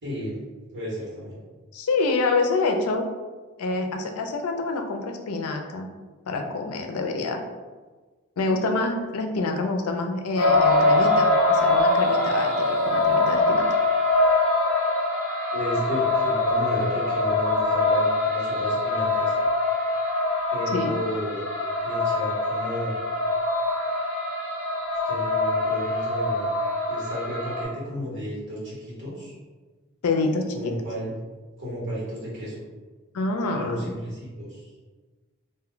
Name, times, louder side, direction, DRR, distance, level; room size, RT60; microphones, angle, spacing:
voice 1, 0.0-0.4 0.7-1.4 15.5-19.3 20.5-21.4 21.8-22.9 25.0-26.5 26.9-29.4 30.5-31.1 31.6-32.5 33.5-34.7, equal, 55° right, -7 dB, 1.4 m, -33 dB
voice 2, 1.7-3.0 3.6-5.9 6.3-7.4 8.4-13.6 20.7-20.9 30.0-30.7 33.1-33.9, left 3 dB, 90° left, 4 dB, 0.4 m, -27 dB
sound 1, 10.4-27.6, left 2 dB, 60° left, 0.9 m, -23 dB
2.6 x 2.2 x 3.7 m, 1.3 s
head